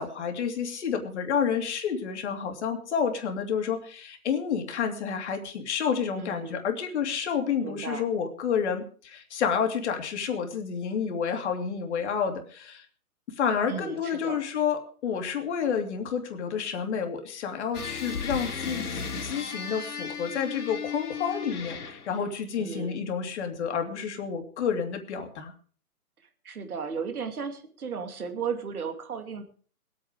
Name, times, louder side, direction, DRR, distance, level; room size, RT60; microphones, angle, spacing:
voice 1, 0.0-12.8 13.4-25.5, left 7 dB, 50° left, 4 dB, 2.7 m, -29 dB
voice 2, 6.1-6.6 7.6-8.0 13.7-14.4 22.6-23.0 26.4-29.4, right 6 dB, 70° right, 6 dB, 2.8 m, -35 dB
sound 1, 17.7-22.2, left 6 dB, 75° left, 3.7 m, -35 dB
20.5 x 8.6 x 5.0 m, 0.43 s
hypercardioid pair, 145°, 45 cm